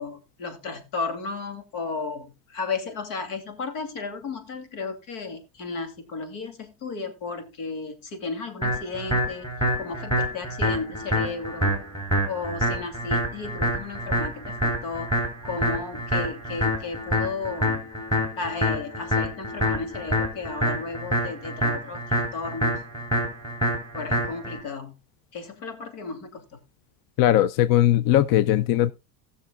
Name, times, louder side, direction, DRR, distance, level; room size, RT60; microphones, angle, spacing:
voice 1, 0.0-9.5 9.8-11.8 12.3-15.1 15.4-17.9 18.4-22.8 23.9-25.0 25.3-26.4, left 4 dB, 80° left, 2.6 m, -34 dB
sound 1, 8.6-24.6, equal, 10° left, 3.9 m, -26 dB
voice 2, 27.2-28.9, left 13 dB, 50° left, 0.5 m, -19 dB
19.0 x 6.5 x 2.2 m
cardioid pair, 140°, 47 cm